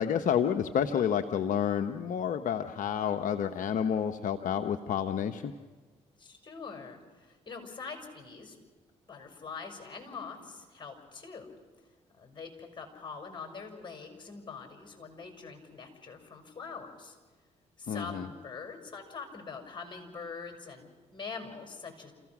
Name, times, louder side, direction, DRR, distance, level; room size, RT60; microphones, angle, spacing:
voice 1, 0.0-5.5 17.9-18.2, left 8 dB, 65° left, 6 dB, 0.9 m, -29 dB
voice 2, 6.2-8.6 9.1-11.5 12.1-17.2 17.8-22.1, left 5 dB, 35° left, 3 dB, 6.0 m, -44 dB
28.5 x 16.0 x 6.1 m, 1.4 s
hypercardioid pair, 50°, 15 cm